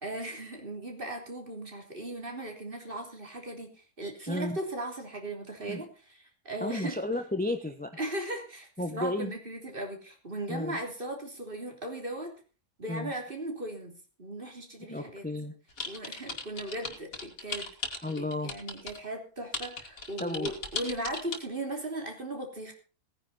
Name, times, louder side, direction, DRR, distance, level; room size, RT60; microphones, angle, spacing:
voice 1, 0.0-3.7 4.0-7.0 8.0-12.3 12.8-13.9 14.2-15.2 15.9-17.7 18.4-22.7, right 1 dB, 35° right, 2 dB, 3.6 m, -37 dB
voice 2, 4.3-4.6 5.7-5.8 6.6-7.9 8.8-9.3 10.5-10.8 12.9-13.1 14.9-15.5 18.0-18.5 20.2-20.5, left 1 dB, 5° left, 7 dB, 1.0 m, -33 dB
sound 1, 15.8-19.0 19.5-21.4, left 4 dB, 60° left, 2.5 m, -36 dB
18.0 x 9.9 x 4.2 m, 0.35 s
omnidirectional pair, 1.6 m